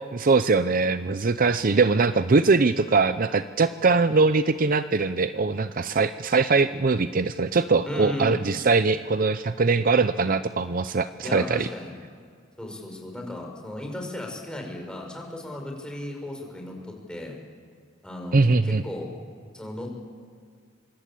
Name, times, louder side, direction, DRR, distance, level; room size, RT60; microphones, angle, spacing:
voice 1, 0.0-11.7 18.3-18.8, right 4 dB, 45° right, 12 dB, 0.6 m, -22 dB
voice 2, 7.9-8.4 11.2-11.9 12.6-16.8 17.1-17.3 18.0-19.1 19.5-19.9, left 1 dB, 5° left, 1 dB, 5.2 m, -35 dB
25.5 x 24.5 x 8.5 m, 2.2 s
head